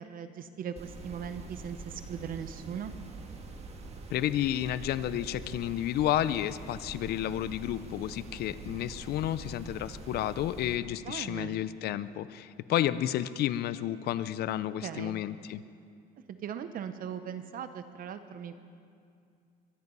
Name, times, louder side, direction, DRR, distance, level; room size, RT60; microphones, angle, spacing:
voice 1, 0.0-2.9 11.1-11.6 14.8-15.2 16.3-18.6, right 8 dB, 55° right, 10 dB, 0.8 m, -39 dB
sound 1, 0.8-10.8, right 3 dB, 40° right, 1.8 m, -45 dB
voice 2, 4.1-15.6, left 12 dB, 70° left, 16 dB, 0.6 m, -31 dB
23.5 x 11.0 x 5.5 m, 2.4 s
cardioid pair, 110°, 17 cm